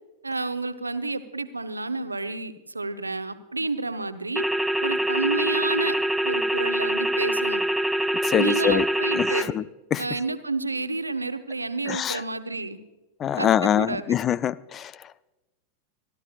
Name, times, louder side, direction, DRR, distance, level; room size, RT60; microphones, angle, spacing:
voice 1, 0.2-4.4 4.8-6.0 6.2-7.6 8.4-9.5 10.0-12.8 13.3-14.1, right 3 dB, 80° right, 11 dB, 0.7 m, -30 dB
sound 1, 4.4-9.4, right 1 dB, 5° right, 0.7 m, -25 dB
voice 2, 8.2-8.9 9.2-9.6 9.9-10.0 11.9-12.2 13.2-14.9, left 9 dB, 25° left, 21 dB, 0.4 m, -24 dB
26.0 x 12.5 x 2.4 m, 1.1 s
figure-of-eight pair, 90°, 0 cm